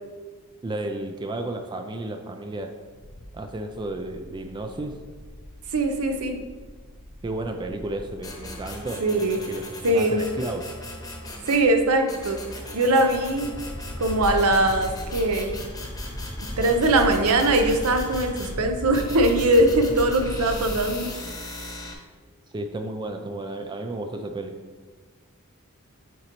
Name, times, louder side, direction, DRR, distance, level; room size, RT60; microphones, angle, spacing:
voice 1, 0.6-2.8 3.3-5.0 7.2-9.1 9.5-10.7 22.5-24.5, right 2 dB, 20° right, 5 dB, 0.3 m, -32 dB
sound 1, 2.9-20.8, equal, 40° left, 0.7 m, -37 dB
voice 2, 5.7-6.4 9.0-9.4 9.8-10.3 11.5-12.4 12.7-13.5 14.0-15.5 16.6-21.1, right 1 dB, 70° right, 5 dB, 0.7 m, -21 dB
sound 2, 8.2-11.7 12.1-18.5 18.9-21.9, left 1 dB, 15° left, 0.9 m, -38 dB
9.2 x 3.9 x 3.0 m, 1.4 s
head